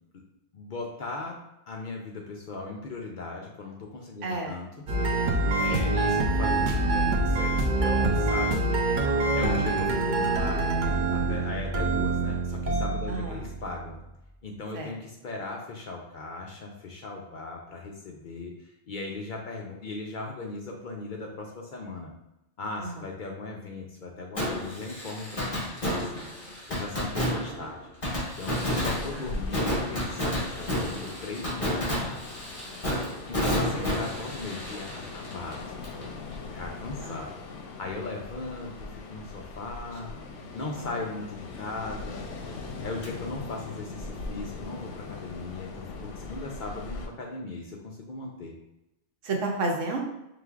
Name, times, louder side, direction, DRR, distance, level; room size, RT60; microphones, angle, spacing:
voice 1, 0.5-1.4 1.7-4.8 5.5-8.7 9.3-10.6 11.1-13.9 14.4-18.5 18.9-22.1 22.6-26.2 26.7-27.8 28.4-32.2 33.3-35.6 36.5-37.4 37.8-38.7 39.1-40.1 40.5-42.2 42.8-45.8 46.2-48.5, left 3 dB, 55° left, 0 dB, 0.6 m, -37 dB
voice 2, 4.2-4.5 5.7-5.8 9.4-9.6 13.1-13.3 14.7-14.9 22.8-22.9 37.0-37.1 40.8-40.9 49.2-50.0, right 2 dB, 90° right, 2 dB, 1.1 m, -31 dB
sound 1, 4.9-14.0, right 2 dB, 55° right, 0.6 m, -26 dB
Fireworks, 24.4-36.0 36.3-36.4 43.0-43.1, equal, 30° left, 1.2 m, -31 dB
Ocean, 28.7-47.1, left 3 dB, 90° left, 0.9 m, -41 dB
5.0 x 3.3 x 2.4 m, 0.88 s
omnidirectional pair, 1.2 m